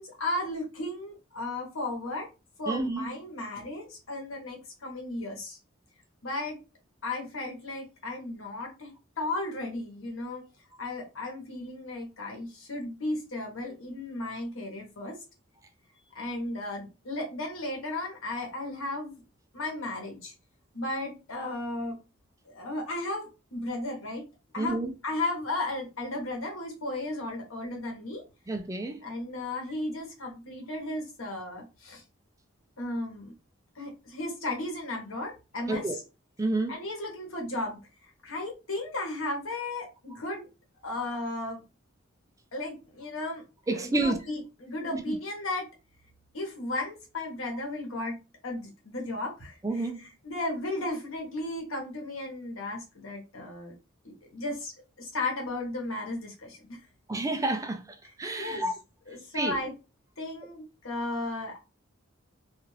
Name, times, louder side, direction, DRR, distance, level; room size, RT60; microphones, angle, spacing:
voice 1, 0.0-2.3 2.6-5.6 6.2-6.6 7.0-10.4 10.8-15.2 16.1-19.1 19.5-20.3 20.7-22.0 22.4-24.2 24.5-28.2 29.0-32.0 32.8-33.3 33.7-36.0 36.7-37.8 38.2-40.5 40.8-41.6 42.5-43.4 43.7-45.7 46.3-48.2 48.4-53.7 54.0-54.7 55.0-56.8 58.0-58.7 59.1-59.7 60.2-61.6, left 2 dB, 80° left, 1.1 m, -35 dB
voice 2, 2.7-3.1 24.6-24.9 28.5-29.0 35.7-36.0 36.4-36.7 43.7-44.2 44.9-45.2 49.6-50.0 57.1-57.8 58.2-58.7 59.3-59.6, right 2 dB, 15° right, 0.3 m, -29 dB
2.4 x 2.4 x 3.1 m
head